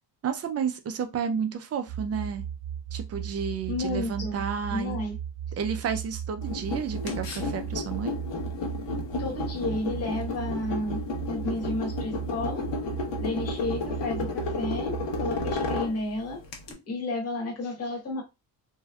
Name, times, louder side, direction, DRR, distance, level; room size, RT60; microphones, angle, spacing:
voice 1, 0.2-2.4 2.9-5.0 5.6-8.2, right 7 dB, 40° right, 0.4 m, -31 dB
sound 1, 1.9-15.9, right 9 dB, ahead, 0.7 m, -36 dB
voice 2, 3.7-4.4 4.7-5.2 9.2-11.0 11.3-12.6 13.2-14.9 15.2-16.4 16.7-18.2, left 2 dB, 35° left, 1.1 m, -32 dB
sound 2, 6.4-16.7, left 3 dB, 85° left, 1.0 m, -33 dB
3.4 x 2.6 x 2.2 m
cardioid pair, 170°, 42 cm